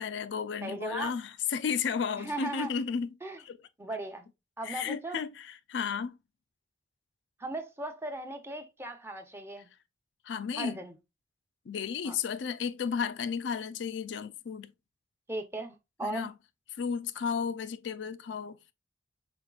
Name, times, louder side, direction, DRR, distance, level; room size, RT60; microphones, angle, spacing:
voice 1, 0.0-3.2 3.4-3.6 4.6-6.2 10.2-10.8 11.7-14.7 16.0-16.3 16.8-18.7, left 6 dB, 80° left, 0.4 m, -33 dB
voice 2, 0.6-1.1 2.2-2.7 3.2-3.4 3.8-4.2 4.6-5.2 7.4-9.7 10.6-10.9 12.0-12.2 15.3-16.3, right 2 dB, 15° right, 0.7 m, -37 dB
5.0 x 4.0 x 2.3 m
head